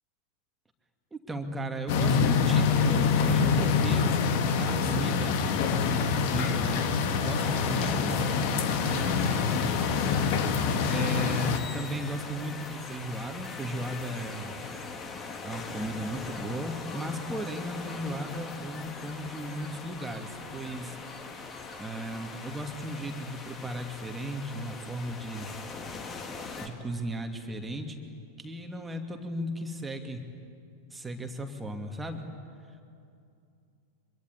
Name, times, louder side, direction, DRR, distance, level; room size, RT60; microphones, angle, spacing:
voice 1, 1.1-4.1 4.5-5.4 6.3-8.2 8.8-9.8 10.9-14.5 15.4-21.0 21.8-25.5 26.6-28.0 28.4-30.2 30.9-32.2, right 1 dB, 10° right, 4 dB, 2.6 m, -36 dB
sound 1, 1.9-11.6, left 5 dB, 45° left, 2.1 m, -25 dB
sound 2, 7.4-26.7, left 4 dB, 25° left, 2.7 m, -41 dB
24.5 x 23.5 x 9.8 m, 2.5 s
figure-of-eight pair, 90°, 0 cm